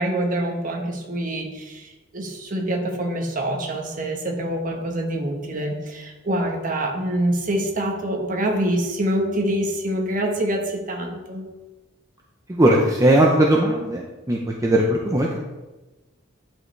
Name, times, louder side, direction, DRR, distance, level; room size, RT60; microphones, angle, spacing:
voice 1, 0.0-11.5, right 1 dB, 40° right, 2 dB, 1.2 m, -25 dB
voice 2, 12.5-15.4, right 1 dB, 15° right, -1 dB, 0.6 m, -19 dB
10.5 x 5.2 x 3.3 m, 1.1 s
head